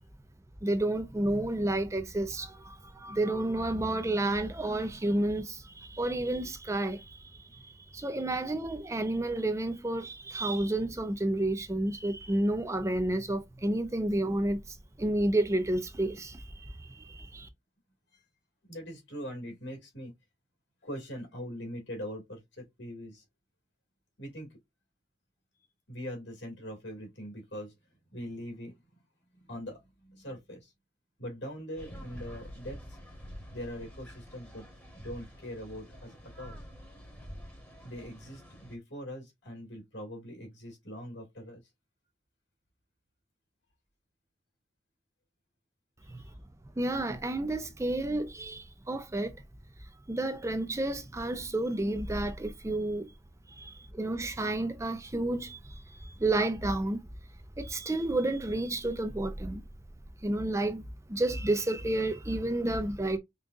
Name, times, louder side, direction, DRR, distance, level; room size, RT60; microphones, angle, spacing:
voice 1, 0.6-17.5 46.1-46.2 46.8-49.4 50.1-53.1 53.6-57.0 57.6-59.6 60.2-63.2, right 1 dB, 15° right, 0.5 m, -31 dB
voice 2, 18.7-20.1 20.8-23.2 24.2-24.6 25.9-27.7 28.1-28.8 29.3-30.7 31.2-33.0 33.5-34.7 34.9-36.6 37.8-41.6 46.0-46.3, equal, 75° left, 2.3 m, -42 dB
sound 1, 31.8-38.8, equal, 10° left, 1.2 m, -47 dB
5.3 x 2.4 x 2.4 m
head